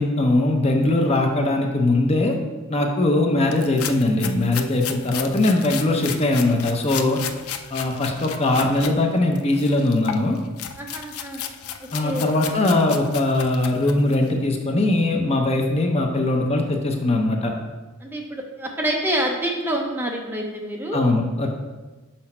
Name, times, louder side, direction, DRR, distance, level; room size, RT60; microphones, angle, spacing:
voice 1, 0.0-2.3 2.7-7.2 7.7-10.4 11.9-17.5 20.9-21.5, left 2 dB, 30° left, 2 dB, 0.7 m, -21 dB
sound 1, 3.5-8.9 9.3-14.3, left 9 dB, 85° left, 0.5 m, -34 dB
voice 2, 10.8-11.4 11.8-12.2 18.0-21.0, right 1 dB, 10° right, 0 dB, 0.6 m, -27 dB
5.9 x 5.2 x 4.4 m, 1.2 s
head